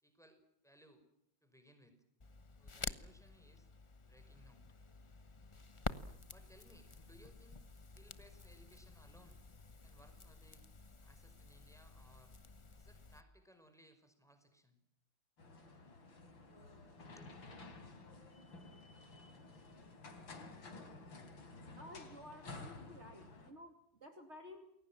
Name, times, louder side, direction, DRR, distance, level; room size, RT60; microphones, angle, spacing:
voice 1, 0.0-1.1 1.4-2.0 2.6-3.7 4.1-4.6 6.3-9.4 9.8-10.7 11.0-12.3 12.8-14.8 17.0-17.3, equal, ahead, 8 dB, 5.2 m, -65 dB
Crackle, 2.2-13.2, left 3 dB, 25° left, 0.6 m, -50 dB
sound 1, 15.4-23.5, left 3 dB, 85° left, 4.4 m, -53 dB
voice 2, 21.8-23.7 24.0-24.6, left 1 dB, 35° right, 5 dB, 2.9 m, -53 dB
29.0 x 21.5 x 7.4 m, 0.76 s
omnidirectional pair, 2.1 m